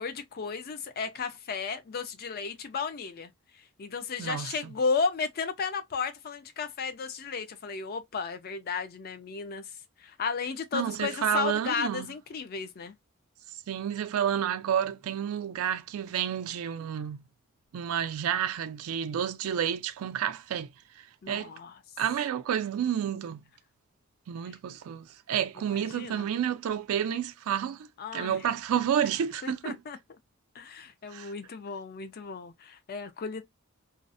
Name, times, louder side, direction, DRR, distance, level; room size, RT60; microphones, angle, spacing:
voice 1, 0.0-3.3 3.8-9.6 10.0-12.9 21.2-21.8 25.7-26.3 28.0-28.4 29.4-30.0 30.5-33.4, left 5 dB, 45° left, 0.4 m, -34 dB
voice 2, 4.2-4.7 10.7-12.1 13.7-17.2 17.7-20.7 21.3-21.5 22.0-23.4 24.3-27.9 28.1-29.8 31.1-31.3, right 9 dB, 85° right, 0.3 m, -30 dB
2.4 x 2.0 x 2.5 m
head